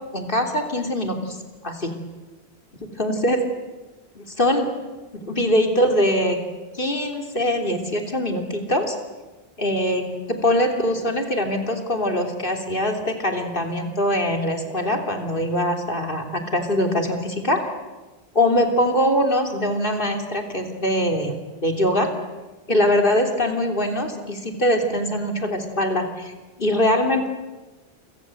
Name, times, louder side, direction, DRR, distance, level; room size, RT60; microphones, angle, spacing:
voice 1, 0.1-1.4 1.6-2.0 2.8-3.4 4.2-4.7 5.2-6.4 6.7-9.0 9.6-17.6 18.4-22.1 22.7-26.3 26.6-27.3, left 1 dB, 55° left, 4 dB, 3.5 m, -22 dB
29.0 x 25.5 x 7.9 m, 1.1 s
omnidirectional pair, 1.1 m